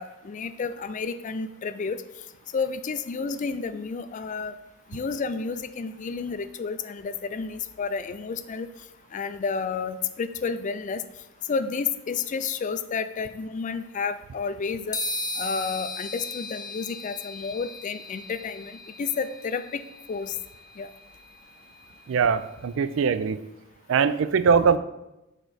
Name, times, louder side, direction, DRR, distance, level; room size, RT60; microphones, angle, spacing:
voice 1, 0.0-2.0 2.5-4.5 4.9-8.7 9.1-11.0 11.5-15.0 15.4-19.8 20.1-20.3 20.8-20.9, left 5 dB, 40° left, 12 dB, 0.4 m, -31 dB
sound 1, 14.9-22.6, left 2 dB, 20° left, 0.7 m, -37 dB
voice 2, 22.1-23.4 23.9-24.8, right 6 dB, 65° right, 14 dB, 0.4 m, -21 dB
6.8 x 4.5 x 4.1 m, 0.94 s
head